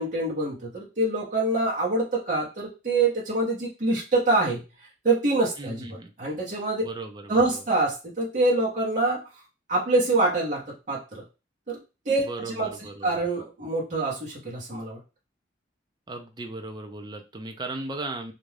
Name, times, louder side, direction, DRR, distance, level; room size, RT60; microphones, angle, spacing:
voice 1, 0.0-4.6 5.0-6.8 7.3-9.2 9.7-10.6 10.9-11.2 11.7-11.8 12.0-15.0, right 2 dB, 40° right, -5 dB, 0.9 m, -25 dB
voice 2, 5.6-6.1 6.8-7.6 12.2-13.2 16.1-18.3, right 2 dB, 25° right, 5 dB, 0.4 m, -37 dB
2.5 x 2.2 x 3.2 m, 0.29 s
head